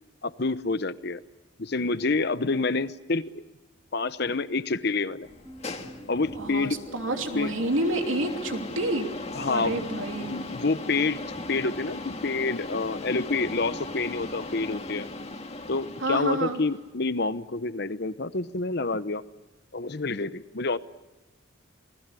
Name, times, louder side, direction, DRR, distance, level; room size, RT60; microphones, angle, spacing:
voice 1, 0.2-1.2 1.6-3.4 3.9-5.3 6.1-6.8 7.3-7.5 9.4-9.8 10.2-11.2 11.5-15.1 15.7-19.2 19.7-20.8, left 3 dB, 50° left, 14 dB, 0.9 m, -28 dB
sound 1, 5.2-16.9, left 2 dB, 30° left, 1.9 m, -38 dB
sound 2, 5.4-10.5, equal, 5° right, 2.1 m, -48 dB
voice 2, 6.4-9.1 9.4-10.6 16.0-16.6, right 1 dB, 75° right, 4 dB, 3.0 m, -29 dB
28.0 x 20.0 x 8.3 m, 1.1 s
head